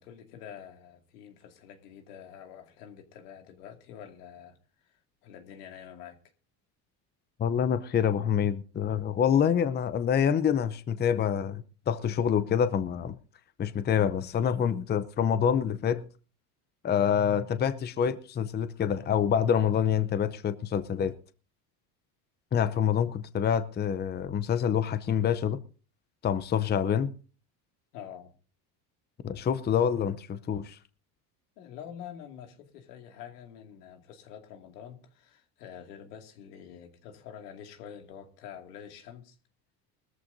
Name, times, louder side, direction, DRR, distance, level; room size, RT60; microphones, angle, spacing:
voice 1, 0.0-6.2 27.9-28.3 31.6-39.4, left 9 dB, 85° left, 2.4 m, -47 dB
voice 2, 7.4-13.2 13.6-16.1 16.8-21.2 22.5-25.6 26.2-27.1 29.2-30.8, left 8 dB, 20° left, 0.7 m, -26 dB
19.5 x 14.0 x 2.7 m
supercardioid pair, 105°, 46 cm